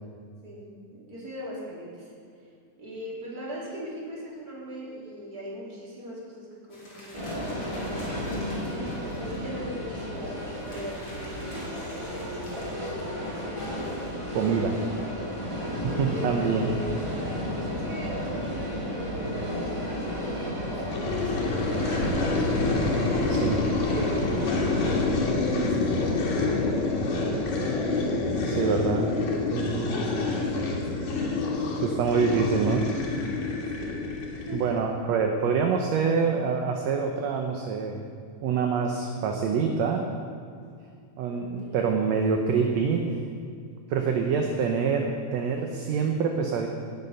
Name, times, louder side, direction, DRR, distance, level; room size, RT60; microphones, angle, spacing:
voice 1, 0.4-2.5 2.8-8.9 9.2-14.0 15.9-22.7 23.9-24.5 25.3-26.9 27.3-28.1 28.6-29.1 29.8-31.3 33.8-34.8 41.3-41.8 44.2-44.6, equal, 30° right, -5 dB, 3.5 m, -40 dB
sound 1, 6.7-9.4 9.8-9.9 10.2-14.1, left 1 dB, 40° left, 4.0 m, -49 dB
sound 2, 7.1-25.0, equal, 10° right, 2.6 m, -32 dB
voice 2, 14.4-14.8 16.0-16.7 23.3-23.7 28.5-29.1 29.5-29.9 31.8-32.9 34.5-38.0 38.4-40.1 41.2-43.0 43.9-46.7, right 5 dB, 70° right, 3 dB, 1.8 m, -26 dB
sound 3, 20.9-34.8, left 3 dB, 85° left, 3.4 m, -27 dB
18.0 x 8.2 x 5.7 m, 2.3 s
omnidirectional pair, 3.6 m